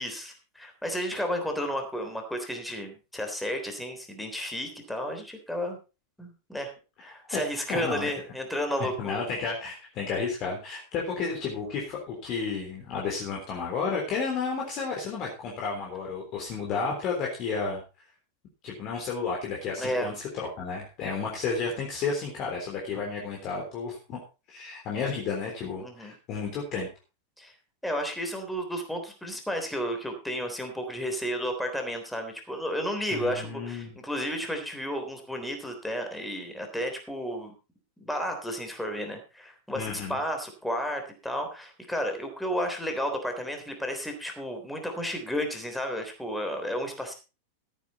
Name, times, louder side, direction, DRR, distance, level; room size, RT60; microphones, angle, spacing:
voice 1, 0.0-5.8 6.2-6.7 7.0-9.2 19.8-20.1 25.8-26.1 27.4-27.5 27.8-37.5 38.0-47.1, equal, 5° left, 4 dB, 3.5 m, -32 dB
voice 2, 7.0-7.4 7.7-8.1 9.0-17.8 18.6-20.1 20.4-24.2 24.5-26.9 33.1-34.0 39.7-40.2, left 5 dB, 35° left, -1 dB, 3.6 m, -32 dB
13.5 x 10.0 x 4.2 m, 0.31 s
figure-of-eight pair, 90°, 0 cm